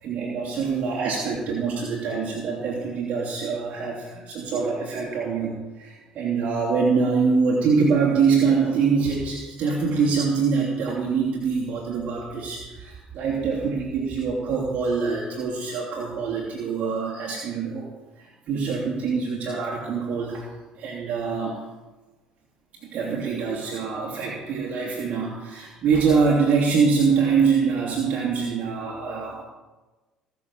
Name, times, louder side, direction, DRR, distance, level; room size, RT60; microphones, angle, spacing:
voice 1, 0.0-17.9 18.2-20.5 20.8-21.6 22.9-29.4, right 5 dB, 60° right, -4 dB, 3.0 m, -24 dB
18.5 x 7.0 x 7.2 m, 1.2 s
supercardioid pair, 75°, 3 cm